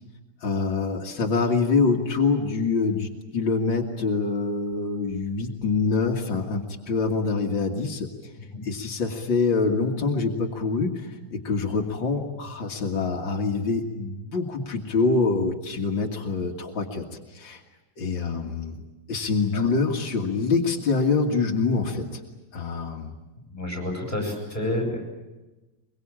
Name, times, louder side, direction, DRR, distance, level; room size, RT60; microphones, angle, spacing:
voice 1, 0.4-8.3 8.6-17.1 17.3-17.6 18.0-18.7 19.1-22.2 22.5-23.1, left 4 dB, 90° left, 1 dB, 2.6 m, -25 dB
voice 2, 23.5-25.0, left 1 dB, 20° left, 1 dB, 8.0 m, -29 dB
24.0 x 23.0 x 8.8 m, 1.1 s
omnidirectional pair, 2.0 m